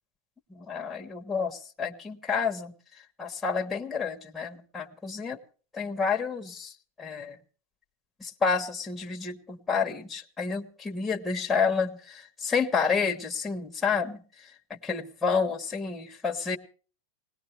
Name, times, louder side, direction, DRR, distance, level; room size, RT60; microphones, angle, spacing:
voice 1, 0.5-2.7 3.2-5.4 5.7-6.7 7.0-7.4 8.2-14.2 14.7-16.6, left 5 dB, 10° left, 2 dB, 1.2 m, -29 dB
20.0 x 18.0 x 3.4 m, 0.39 s
supercardioid pair, 160°, 0 cm